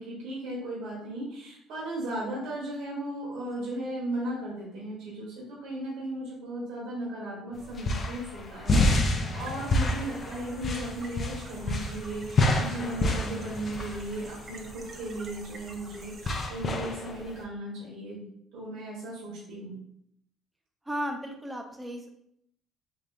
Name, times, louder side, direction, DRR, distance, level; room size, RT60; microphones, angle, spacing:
voice 1, 0.0-18.2 18.5-19.8, right 1 dB, 80° right, -6 dB, 1.3 m, -36 dB
sound 1, 7.5-17.4, left 2 dB, 40° left, 0.6 m, -29 dB
sound 2, 9.4-16.5, right 3 dB, 45° right, 0.7 m, -49 dB
voice 2, 20.9-22.1, equal, 10° right, 3 dB, 0.7 m, -34 dB
3.5 x 3.2 x 2.6 m, 0.72 s
cardioid pair, 90°, 0 cm